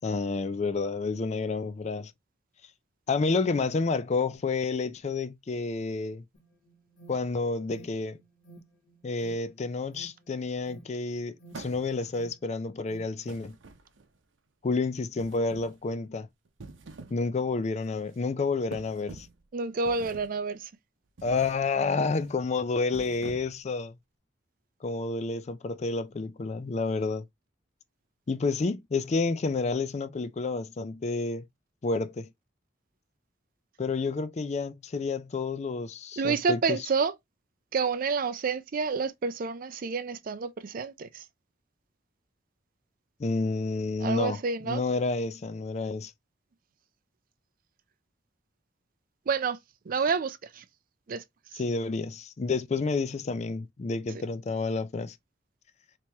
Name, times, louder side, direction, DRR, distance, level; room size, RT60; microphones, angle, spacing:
voice 1, 0.0-2.1 3.1-6.2 7.1-8.2 9.0-13.6 14.6-16.3 17.1-19.3 21.2-23.9 24.8-27.2 28.3-31.5 31.8-32.3 33.8-36.8 43.2-44.4 44.6-46.1 51.5-55.2, left 3 dB, 35° left, 0.4 m, -30 dB
Alarm, 6.3-13.1, right 3 dB, 80° left, 1.4 m, -54 dB
sound 1, 11.5-12.2 13.3-14.2 15.2-15.8 16.5-17.3 17.6-17.9 18.7-19.4 19.9-20.4 21.2-21.6 22.0-22.3 22.8-23.7, right 3 dB, 85° right, 0.7 m, -46 dB
voice 2, 19.5-20.7 36.2-37.1 37.7-41.2 44.0-44.8 49.3-49.6 49.9-50.6 51.1-51.2, right 5 dB, 50° right, 0.4 m, -29 dB
3.4 x 3.0 x 3.0 m
head